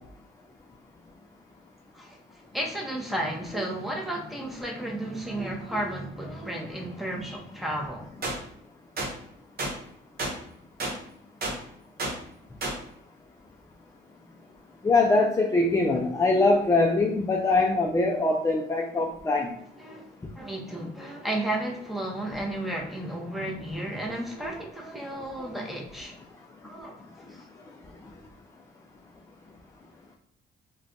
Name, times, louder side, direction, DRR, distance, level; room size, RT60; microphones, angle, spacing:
voice 1, 1.9-8.1 19.8-20.1 20.3-26.1 26.6-27.0 27.3-27.5, right 1 dB, ahead, -1 dB, 0.8 m, -33 dB
sound 1, 8.2-8.4 9.0-9.1 9.6-9.7 10.2-10.3 10.8-10.9 11.4-11.6 12.0-12.1 12.6-12.8, right 2 dB, 50° right, 1.0 m, -30 dB
voice 2, 14.8-19.6, left 2 dB, 15° left, 1 dB, 0.4 m, -23 dB
2.4 x 2.2 x 3.8 m, 0.74 s
cardioid pair, 90°, 20 cm